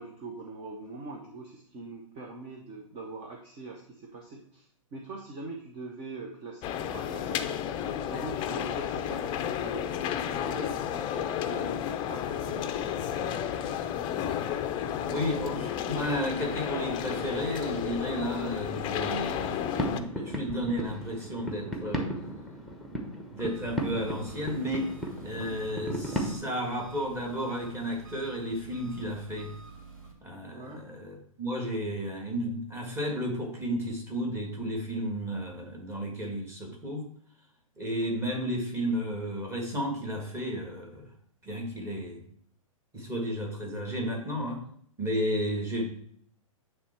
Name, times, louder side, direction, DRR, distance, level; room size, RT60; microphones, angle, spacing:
voice 1, 0.0-7.6 8.0-13.4 30.5-30.8, right 3 dB, 35° right, 1 dB, 0.9 m, -43 dB
sound 1, 6.6-20.0, left 9 dB, 30° left, 0.5 m, -32 dB
voice 2, 15.1-22.1 23.3-24.9 25.2-29.5 30.2-37.0 37.8-41.1 41.4-42.2 42.9-44.6 45.0-45.9, equal, 15° right, 0 dB, 1.9 m, -33 dB
sound 2, 19.7-26.4, right 1 dB, ahead, 0.9 m, -35 dB
Engine, 23.4-30.1, right 3 dB, 85° right, 2.1 m, -49 dB
8.6 x 3.3 x 4.4 m, 0.63 s
hypercardioid pair, 120°, 18 cm